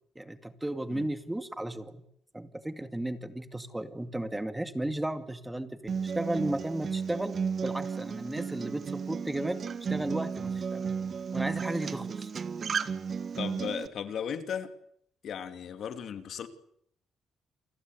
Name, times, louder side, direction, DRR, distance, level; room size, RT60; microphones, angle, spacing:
voice 1, 0.2-2.1 2.3-7.3 7.6-9.6 9.9-10.9 11.3-12.3, right 1 dB, 10° right, 2.4 m, -34 dB
Acoustic guitar, 5.9-13.9, right 6 dB, 45° right, 1.7 m, -34 dB
voice 2, 13.4-14.7 15.2-16.5, left 8 dB, 65° left, 2.7 m, -36 dB
29.0 x 21.0 x 8.3 m
cardioid pair, 90°, 0 cm